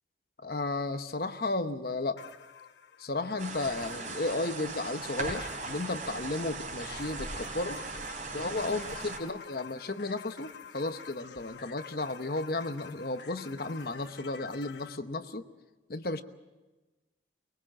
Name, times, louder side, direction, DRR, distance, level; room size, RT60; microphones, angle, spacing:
voice 1, 0.4-2.2 3.0-7.8 8.3-15.5 15.9-16.2, left 2 dB, 55° left, 9 dB, 1.0 m, -34 dB
sound 1, 2.2-15.0, left 6 dB, 80° left, 1.1 m, -49 dB
sound 2, 3.4-9.2, right 3 dB, 45° right, 3.5 m, -38 dB
24.0 x 21.5 x 7.5 m, 1.2 s
head